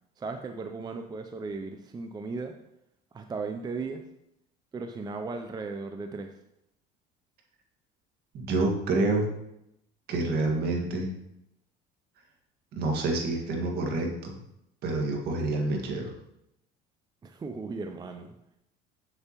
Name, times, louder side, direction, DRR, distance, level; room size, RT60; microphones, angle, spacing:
voice 1, 0.2-2.5 3.1-4.0 4.7-6.3 17.2-18.3, right 4 dB, 20° right, 5 dB, 0.5 m, -36 dB
voice 2, 8.3-9.3 10.1-11.1 12.7-14.3 14.8-16.1, right 2 dB, 60° right, 1 dB, 1.8 m, -28 dB
6.8 x 6.8 x 3.0 m, 0.82 s
cardioid pair, 110°, 19 cm